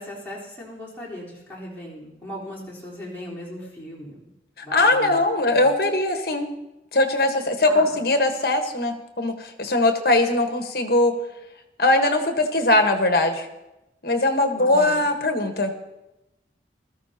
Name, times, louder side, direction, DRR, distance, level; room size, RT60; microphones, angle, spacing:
voice 1, 0.0-4.2 4.6-5.7 7.7-7.9 14.5-15.0, equal, 10° left, -8 dB, 4.0 m, -38 dB
voice 2, 4.6-6.5 6.9-11.2 11.8-13.5 14.0-15.7, left 2 dB, 55° left, 5 dB, 1.3 m, -21 dB
20.5 x 14.0 x 2.9 m, 0.96 s
head